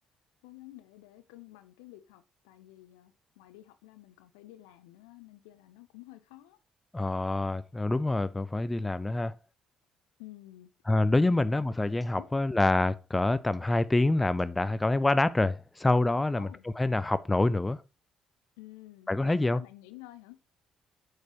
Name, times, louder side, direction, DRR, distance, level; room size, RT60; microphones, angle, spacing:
voice 1, 0.4-6.6 10.2-10.7 12.2-12.3 16.3-16.7 18.6-20.4, left 16 dB, 70° left, 0.7 m, -51 dB
voice 2, 6.9-9.3 10.9-16.5 16.8-17.8 19.1-19.6, left 2 dB, 15° left, 0.5 m, -26 dB
8.2 x 6.5 x 3.0 m
figure-of-eight pair, 45°, 0 cm